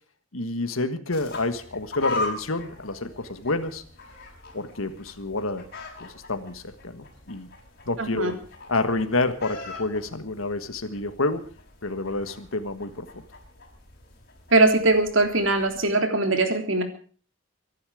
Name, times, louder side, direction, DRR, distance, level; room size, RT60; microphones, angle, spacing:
voice 1, 0.3-3.8 4.5-5.6 6.0-7.5 7.9-8.4 8.7-11.5 11.8-13.2, left 2 dB, 85° left, 9 dB, 1.6 m, -28 dB
sound 1, 1.1-15.8, left 3 dB, 50° left, 5.9 m, -40 dB
voice 2, 8.0-8.3 14.5-16.8, right 2 dB, 65° right, 6 dB, 3.4 m, -21 dB
24.0 x 11.5 x 5.0 m, 0.42 s
head